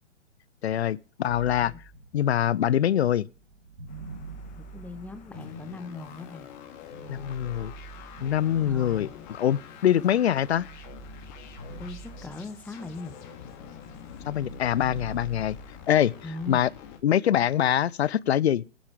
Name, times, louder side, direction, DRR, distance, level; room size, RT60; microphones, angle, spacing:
voice 1, 0.6-1.7 2.1-3.3 7.1-7.7 8.2-10.7 14.3-15.6 15.9-16.1 16.5-16.7 17.0-18.6, left 10 dB, 60° left, 0.6 m, -24 dB
sound 1, 1.3-6.4 6.9-9.6 10.0-12.9 13.1-15.8, right 4 dB, 80° right, 4.0 m, -45 dB
sound 2, 3.9-16.3, left 5 dB, 20° left, 2.5 m, -55 dB
voice 2, 4.6-6.5 8.6-9.1 11.7-13.1 16.2-16.7, left 3 dB, 5° left, 1.1 m, -40 dB
sound 3, 5.3-17.0, left 9 dB, 40° left, 2.6 m, -46 dB
17.5 x 10.5 x 3.6 m
figure-of-eight pair, 125°, 37 cm